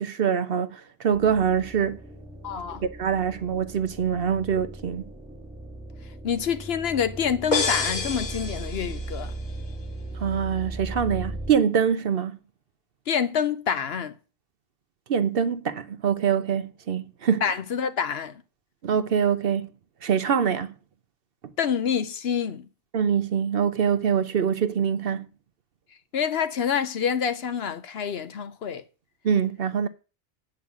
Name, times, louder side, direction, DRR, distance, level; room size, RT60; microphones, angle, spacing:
voice 1, 0.0-2.0 3.0-5.0 10.1-12.4 15.1-17.4 18.8-19.7 20.0-20.7 22.9-25.3 29.2-29.9, right 7 dB, 55° right, 0.8 m, -24 dB
sound 1, 1.1-11.5, right 1 dB, ahead, 2.0 m, -38 dB
voice 2, 2.4-2.9 6.0-9.3 13.1-14.2 17.4-18.4 21.6-22.7 26.1-28.8, left 7 dB, 60° left, 0.9 m, -27 dB
sound 2, 7.5-9.3, left 3 dB, 40° left, 1.4 m, -28 dB
8.7 x 5.6 x 7.3 m
omnidirectional pair, 1.2 m